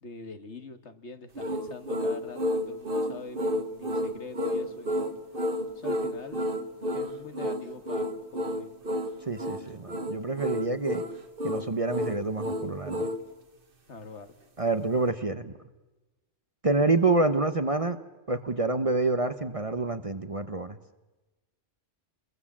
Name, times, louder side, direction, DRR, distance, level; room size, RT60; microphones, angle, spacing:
voice 1, 0.0-5.1 5.8-6.5 6.9-8.7 13.9-14.3, left 3 dB, 65° left, 8 dB, 1.9 m, -44 dB
sound 1, 1.4-13.2, equal, 45° right, 1.7 m, -31 dB
voice 2, 9.3-11.0 11.4-13.1 14.6-15.5 16.6-18.0 18.3-20.8, right 3 dB, 30° right, 10 dB, 0.9 m, -27 dB
29.0 x 22.0 x 7.4 m, 1.1 s
omnidirectional pair, 1.3 m